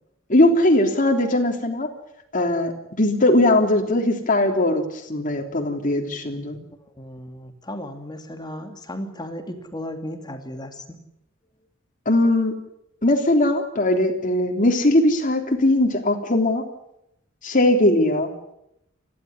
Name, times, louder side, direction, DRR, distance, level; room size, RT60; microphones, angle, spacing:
voice 1, 0.3-1.9 2.3-2.7 3.0-6.6 12.0-12.5 13.0-16.7 17.4-18.3, left 1 dB, 40° left, 3 dB, 3.3 m, -19 dB
voice 2, 6.8-11.0, left 1 dB, 20° left, 6 dB, 2.5 m, -35 dB
29.5 x 12.5 x 10.0 m, 0.83 s
head